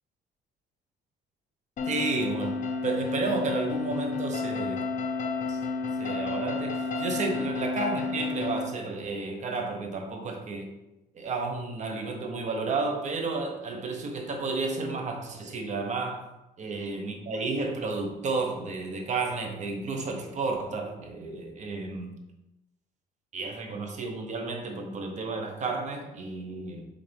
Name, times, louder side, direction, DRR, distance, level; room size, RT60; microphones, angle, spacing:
sound 1, 1.8-8.6, left 4 dB, 50° left, 0.8 m, -31 dB
voice 1, 1.9-2.5 2.8-4.8 5.5-5.6 6.0-10.7 11.1-16.3 16.6-22.1 23.3-26.8, right 3 dB, 45° right, 3 dB, 1.2 m, -32 dB
7.1 x 3.7 x 3.6 m, 0.95 s
cardioid pair, 110°, 17 cm